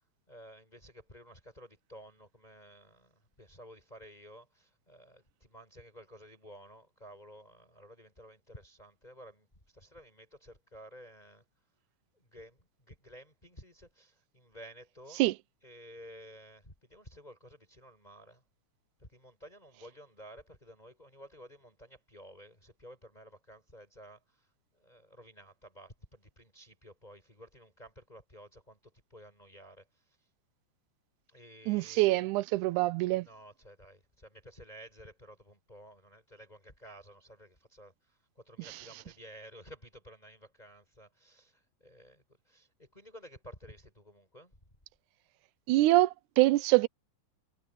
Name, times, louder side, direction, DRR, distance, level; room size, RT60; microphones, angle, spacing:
voice 1, 0.3-11.4 12.1-15.2 15.6-18.4 19.0-30.3 31.3-32.3 33.2-44.6, equal, 10° left, 5.9 m, -53 dB
voice 2, 31.7-33.3 45.7-46.9, right 18 dB, 80° right, 2.0 m, -25 dB
omnidirectional pair, 3.7 m